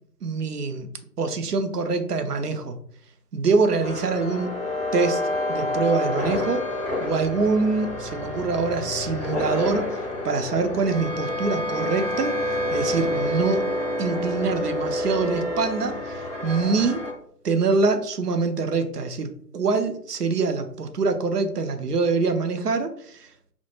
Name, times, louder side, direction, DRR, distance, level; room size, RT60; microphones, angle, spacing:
voice 1, 0.2-0.9 1.2-2.8 3.3-4.5 4.9-5.2 5.5-6.7 7.0-12.4 12.7-13.7 14.0-17.0 17.4-23.3, right 4 dB, 70° right, 7 dB, 0.5 m, -25 dB
sound 1, 3.8-17.1, left 1 dB, 10° left, 0.8 m, -28 dB
2.1 x 2.0 x 3.0 m, 0.62 s
figure-of-eight pair, 145°, 49 cm